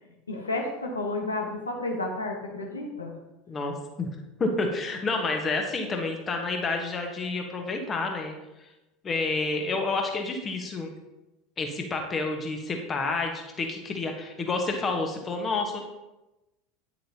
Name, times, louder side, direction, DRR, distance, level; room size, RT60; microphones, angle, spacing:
voice 1, 0.3-3.2, left 2 dB, 80° left, 2 dB, 1.3 m, -31 dB
voice 2, 3.5-4.1 4.4-8.3 9.0-10.9 11.6-15.8, left 3 dB, 25° left, 3 dB, 1.4 m, -29 dB
9.6 x 7.4 x 2.9 m, 0.99 s
figure-of-eight pair, 75°, 0 cm